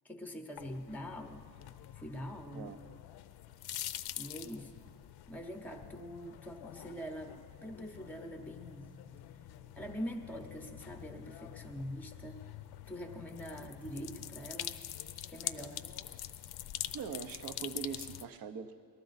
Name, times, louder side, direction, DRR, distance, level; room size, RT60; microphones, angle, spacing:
voice 1, 0.0-1.5 1.9-2.7 4.2-4.7 5.3-8.9 9.8-12.4 12.9-14.8 15.2-15.9, equal, 5° left, 5 dB, 0.7 m, -44 dB
sound 1, 0.6-18.3, left 12 dB, 60° left, 0.5 m, -45 dB
voice 2, 16.9-18.8, right 7 dB, 55° right, 10 dB, 0.7 m, -42 dB
19.0 x 13.0 x 4.0 m, 2.2 s
cardioid pair, 145°, 44 cm